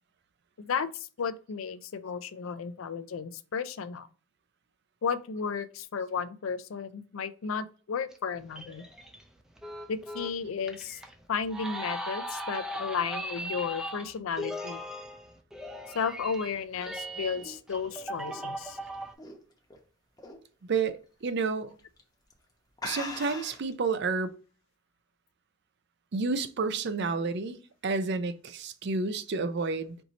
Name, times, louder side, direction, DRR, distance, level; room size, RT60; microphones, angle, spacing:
voice 1, 0.6-4.1 5.0-8.8 9.9-11.0 11.3-14.8 15.9-18.8, left 6 dB, 85° left, 0.4 m, -33 dB
sound 1, 8.1-19.1, equal, 5° right, 0.4 m, -39 dB
sound 2, 16.6-19.8 20.2-20.5 20.9-21.0 21.8-22.0 22.3-22.4 22.8-23.7, left 2 dB, 20° left, 0.8 m, -41 dB
voice 2, 20.7-21.7 22.8-24.3 26.1-27.6 27.8-30.0, right 4 dB, 55° right, 0.5 m, -30 dB
4.5 x 2.6 x 4.0 m
head